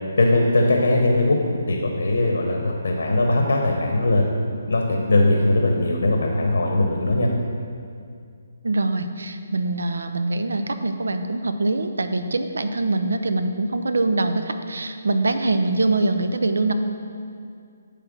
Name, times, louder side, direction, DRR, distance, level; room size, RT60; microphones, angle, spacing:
voice 1, 0.2-1.4 1.7-4.3 4.7-7.3, left 2 dB, 85° left, 1 dB, 1.0 m, -20 dB
voice 2, 8.6-16.7, right 2 dB, 85° right, 8 dB, 0.6 m, -23 dB
9.9 x 3.4 x 6.2 m, 2.3 s
hypercardioid pair, 165°, 0 cm